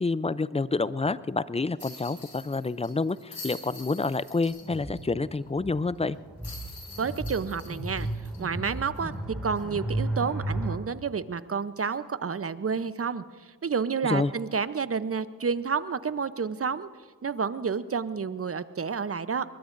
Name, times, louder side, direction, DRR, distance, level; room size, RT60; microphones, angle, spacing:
voice 1, 0.0-6.2 14.0-14.3, left 3 dB, 15° left, 17 dB, 0.5 m, -28 dB
sound 1, 1.8-5.0 5.3-5.4 6.4-9.1 9.5-9.6 11.8-12.0, left 2 dB, 55° left, 5.9 m, -46 dB
sound 2, 4.6-10.8, right 1 dB, ahead, 5.8 m, -34 dB
voice 2, 7.0-8.1 8.4-9.1 9.4-16.9 17.2-19.4, right 5 dB, 35° right, 13 dB, 0.8 m, -30 dB
23.0 x 20.5 x 2.6 m, 1.5 s
supercardioid pair, 50°, 41 cm